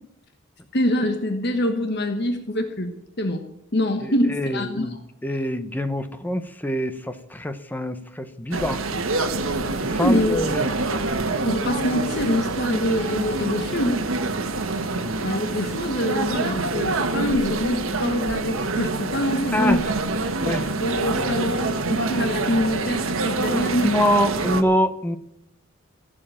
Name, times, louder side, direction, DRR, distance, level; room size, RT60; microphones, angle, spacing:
voice 1, 0.7-5.0 10.0-10.5 11.4-14.0 15.2-19.9 20.7-23.9 24.2-24.3, left 1 dB, 50° left, 6 dB, 1.2 m, -25 dB
voice 2, 4.0-8.8 9.8-10.7 14.9-15.1 19.5-19.8 20.4-20.7 21.1-21.4 23.5-25.2, equal, 10° left, 10 dB, 0.8 m, -25 dB
sound 1, 8.5-24.6, right 3 dB, 75° right, 1.4 m, -26 dB
15.5 x 7.7 x 8.8 m, 0.79 s
head